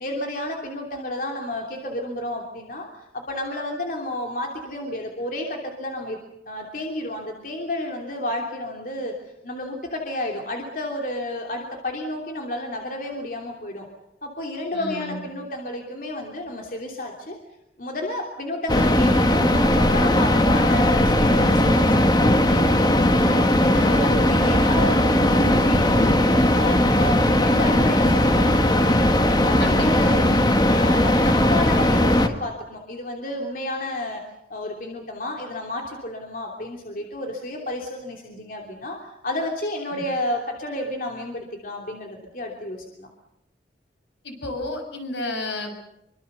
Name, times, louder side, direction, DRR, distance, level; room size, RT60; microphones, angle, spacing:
voice 1, 0.0-2.9 3.1-6.2 6.5-9.1 9.4-13.9 14.2-17.4 17.8-23.4 23.6-26.2 26.5-30.2 30.7-34.2 34.5-43.1, left 1 dB, 50° left, 1 dB, 3.1 m, -31 dB
voice 2, 14.7-15.3 29.6-30.8 39.9-40.0 44.2-45.8, left 2 dB, 80° left, 4 dB, 6.8 m, -32 dB
sound 1, 18.7-32.3, left 1 dB, 25° left, 1.7 m, -18 dB
26.0 x 24.5 x 6.8 m, 0.85 s
head